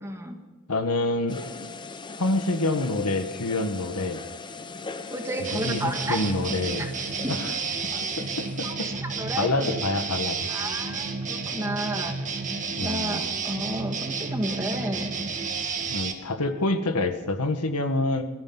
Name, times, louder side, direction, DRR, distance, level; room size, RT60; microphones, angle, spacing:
voice 1, 0.0-0.4 5.1-6.2 6.8-6.9 7.2-7.4 8.6-8.7 9.0-9.8 10.5-12.2 12.8-15.1, right 1 dB, 15° right, 4 dB, 1.8 m, -32 dB
voice 2, 0.7-1.4 2.2-4.2 5.5-6.9 7.3-7.5 8.2-8.9 9.3-10.7 12.8-13.2 15.9-18.2, left 2 dB, 80° left, 7 dB, 1.5 m, -27 dB
sound 1, 1.3-8.7, left 4 dB, 20° left, 0.8 m, -40 dB
sound 2, 5.4-16.1, right 4 dB, 35° right, 1.8 m, -31 dB
22.0 x 14.0 x 4.0 m, 1.2 s
head